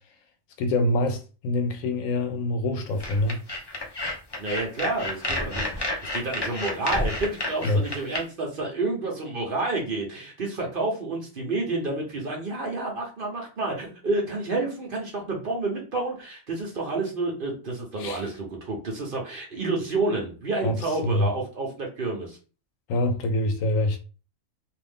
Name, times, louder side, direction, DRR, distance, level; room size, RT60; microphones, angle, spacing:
voice 1, 0.6-3.4 7.6-7.8 18.0-18.3 20.6-20.8 21.0-21.3 22.9-24.0, left 1 dB, 80° left, 1.0 m, -25 dB
sound 1, 3.0-8.2, left 2 dB, 35° left, 0.4 m, -30 dB
voice 2, 4.4-22.4, right 2 dB, 45° right, 0.9 m, -29 dB
2.6 x 2.5 x 3.4 m
omnidirectional pair, 1.4 m